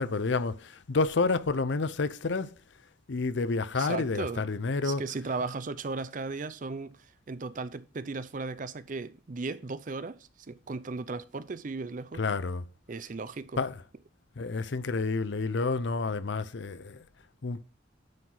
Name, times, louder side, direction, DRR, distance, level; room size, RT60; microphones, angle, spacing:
voice 1, 0.0-2.5 3.1-5.2 12.1-12.6 13.6-13.8 14.4-17.0 17.4-17.6, left 4 dB, 70° left, 0.6 m, -29 dB
voice 2, 3.8-4.4 4.8-12.2 12.9-13.6, right 3 dB, 40° right, 0.5 m, -36 dB
9.5 x 4.8 x 3.9 m
head